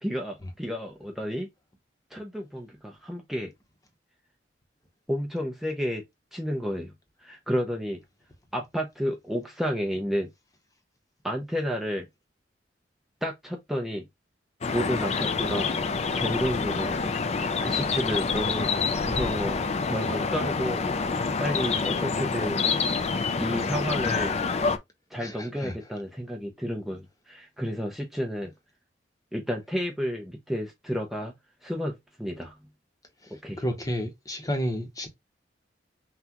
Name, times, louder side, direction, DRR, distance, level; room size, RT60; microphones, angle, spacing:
voice 1, 0.0-1.5 2.1-3.5 5.1-6.0 6.3-6.9 7.2-8.0 8.5-10.3 11.2-12.1 13.2-14.1 14.7-15.7 16.1-20.8 21.4-22.6 23.4-24.4 25.1-28.5 29.3-31.3 31.6-32.5 33.4-33.6, equal, ahead, 0.6 m, -31 dB
sound 1, 14.6-24.8, left 4 dB, 35° left, 0.4 m, -27 dB
voice 2, 25.2-25.7 33.2-35.1, equal, 20° left, 0.9 m, -32 dB
5.8 x 2.3 x 2.9 m
head